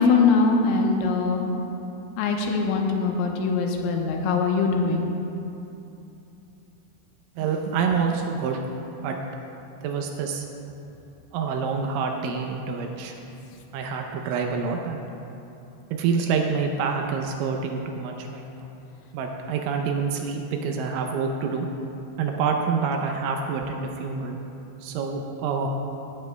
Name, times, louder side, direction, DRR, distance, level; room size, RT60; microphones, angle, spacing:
voice 1, 0.0-1.4 2.2-5.0, left 4 dB, 85° left, 1 dB, 3.5 m, -22 dB
voice 2, 7.4-8.7 9.0-9.2 9.8-10.4 11.3-13.1 13.7-15.1 15.9-18.7 19.1-21.7 22.2-24.4 24.8-25.7, right 5 dB, 80° right, 2 dB, 2.9 m, -27 dB
18.0 x 10.5 x 2.2 m, 2.9 s
omnidirectional pair, 5.8 m